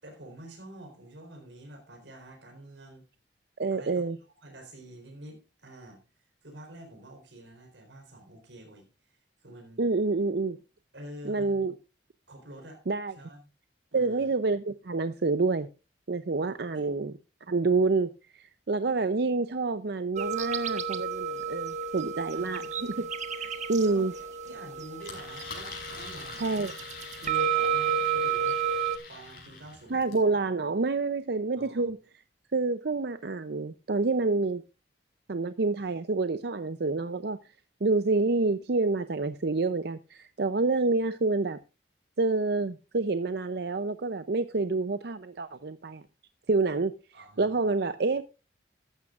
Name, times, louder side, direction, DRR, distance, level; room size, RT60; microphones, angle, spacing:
voice 1, 0.0-3.0 3.7-6.0 6.4-9.8 10.9-11.7 12.3-12.8 13.1-13.5 13.9-14.3 16.7-16.9 22.3-22.7 23.7-26.6 27.2-28.6 29.1-30.1 31.5-31.9 47.1-47.6, right 1 dB, 90° right, 4.2 m, -48 dB
voice 2, 3.6-4.2 9.8-10.6 11.2-11.7 12.9-13.1 13.9-15.7 16.1-17.1 17.5-23.1 23.4-24.1 26.4-26.7 29.9-32.0 32.5-34.6 35.3-37.4 37.8-41.6 42.2-46.0 46.5-46.9 47.4-48.2, right 3 dB, 65° right, 0.6 m, -28 dB
sound 1, 20.2-29.0, right 7 dB, 40° right, 1.2 m, -31 dB
Engine, 25.0-30.3, left 4 dB, 55° left, 5.5 m, -44 dB
14.5 x 12.5 x 2.5 m
head